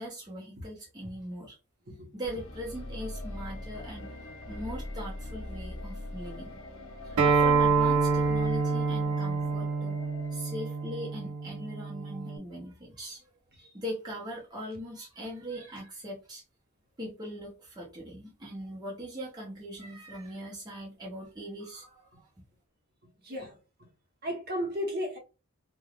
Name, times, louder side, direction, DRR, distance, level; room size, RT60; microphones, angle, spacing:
voice 1, 0.0-1.6 2.1-4.1 4.5-6.6 7.0-10.0 10.3-13.3 13.7-16.4 17.0-22.3, equal, 20° right, 0.7 m, -40 dB
sound 1, 2.2-11.3, left 1 dB, 70° left, 0.9 m, -42 dB
Acoustic guitar, 7.2-12.4, right 4 dB, 80° right, 0.6 m, -27 dB
voice 2, 23.2-23.6 24.2-25.2, equal, 45° right, 0.9 m, -34 dB
3.3 x 2.3 x 2.3 m
head